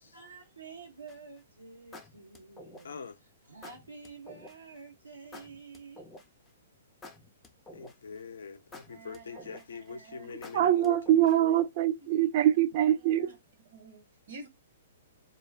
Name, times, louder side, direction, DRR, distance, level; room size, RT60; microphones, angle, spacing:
voice 1, 0.1-3.0 3.5-6.0, right 4 dB, 85° right, 0.7 m, -49 dB
sound 1, 1.1-1.4 1.9-3.1 3.6-4.6 5.3-6.5 7.0-8.2 8.7-9.9 10.4-11.6, left 2 dB, 10° left, 0.5 m, -49 dB
voice 2, 2.8-3.2 7.7-11.6, left 6 dB, 70° left, 0.4 m, -43 dB
voice 3, 8.9-10.3 10.6-10.7 11.3-11.4 12.1-12.3 12.9-13.4 13.7-14.5, right 3 dB, 60° right, 1.0 m, -50 dB
voice 4, 10.5-13.4, right 12 dB, 45° right, 0.4 m, -24 dB
2.2 x 2.2 x 3.1 m
figure-of-eight pair, 120°, 0 cm